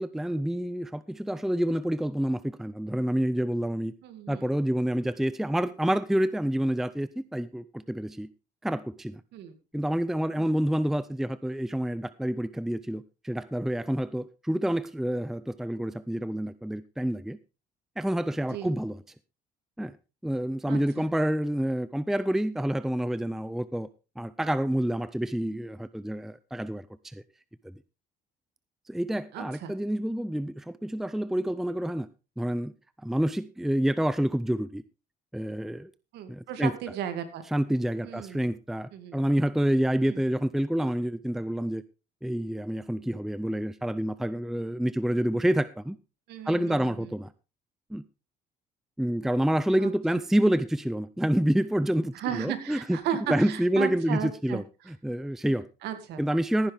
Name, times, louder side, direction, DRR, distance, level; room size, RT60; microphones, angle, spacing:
voice 1, 0.0-3.9 4.3-8.3 8.6-9.2 9.7-17.4 18.0-19.0 19.8-20.0 20.2-23.9 24.2-27.2 27.6-27.7 28.9-32.1 32.4-32.7 33.0-34.8 35.3-35.9 36.3-36.7 37.5-41.8 42.2-46.0 46.4-47.3 47.9-48.0 49.0-53.0 53.3-55.7 56.2-56.7, equal, ahead, 0.5 m, -28 dB
voice 2, 4.0-4.5 9.3-9.6 10.4-10.5 18.5-18.8 20.7-21.1 29.3-29.7 36.1-37.4 38.0-38.5 38.9-39.2 40.1-40.2 46.3-47.1 49.8-49.9 52.1-54.6 55.8-56.2, right 10 dB, 80° right, 2.4 m, -35 dB
15.0 x 10.0 x 3.5 m
cardioid pair, 110°, 17 cm